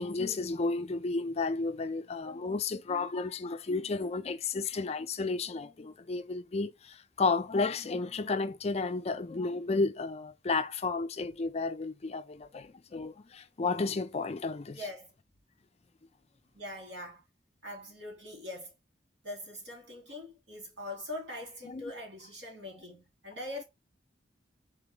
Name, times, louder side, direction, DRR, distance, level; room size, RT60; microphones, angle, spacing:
voice 1, 0.0-14.8 21.7-21.8, left 3 dB, 35° left, 0.4 m, -32 dB
voice 2, 14.7-15.1 16.5-17.2 17.6-18.7 19.2-23.6, left 1 dB, 75° right, 2.7 m, -42 dB
4.4 x 3.6 x 3.3 m
head